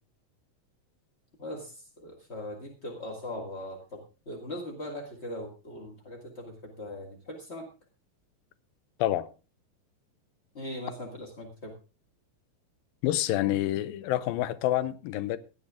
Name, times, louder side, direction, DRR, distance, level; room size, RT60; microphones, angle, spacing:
voice 1, 1.4-7.7 10.5-11.7, left 1 dB, 35° left, 1.1 m, -40 dB
voice 2, 13.0-15.4, left 14 dB, 80° left, 2.5 m, -27 dB
16.5 x 10.0 x 3.6 m
omnidirectional pair, 4.2 m